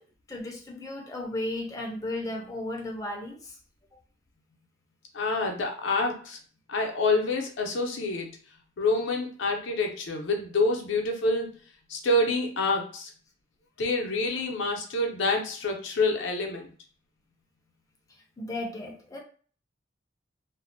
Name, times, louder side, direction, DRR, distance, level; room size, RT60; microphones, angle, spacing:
voice 1, 0.3-3.6 18.4-19.2, left 1 dB, 20° left, -1 dB, 0.4 m, -34 dB
voice 2, 5.1-6.4 6.7-8.3 8.8-11.5 11.9-13.1 13.8-16.7, left 2 dB, 80° left, 2 dB, 0.6 m, -27 dB
2.5 x 2.0 x 2.6 m, 0.43 s
head